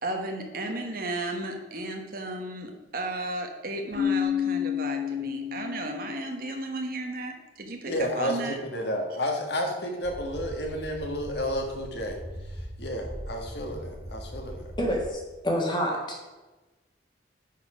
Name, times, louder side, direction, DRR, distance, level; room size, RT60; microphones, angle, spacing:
voice 1, 0.0-8.6, right 2 dB, 50° right, 3 dB, 1.2 m, -34 dB
Keyboard (musical), 3.9-6.6, left 9 dB, 90° right, 2.6 m, -30 dB
voice 2, 7.9-12.2 12.5-14.7, equal, 65° left, 2 dB, 1.5 m, -31 dB
sound 1, 10.0-15.1, equal, 15° right, 1.2 m, -40 dB
voice 3, 14.8-16.3, equal, 25° left, -1 dB, 1.7 m, -28 dB
9.8 x 4.4 x 4.9 m, 1.2 s
head